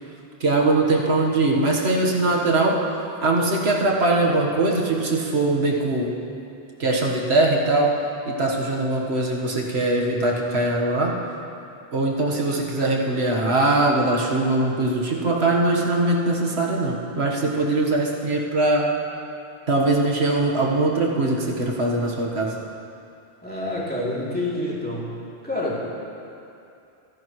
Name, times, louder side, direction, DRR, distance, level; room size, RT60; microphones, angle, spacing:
voice 1, 0.4-2.8 3.2-6.1 6.8-7.9 8.3-11.1 11.9-18.9 19.7-22.5, right 2 dB, 80° right, -2 dB, 1.7 m, -21 dB
voice 2, 23.4-25.1 25.4-25.8, left 1 dB, 10° left, -7 dB, 2.8 m, -27 dB
25.0 x 10.5 x 3.1 m, 2.6 s
omnidirectional pair, 1.1 m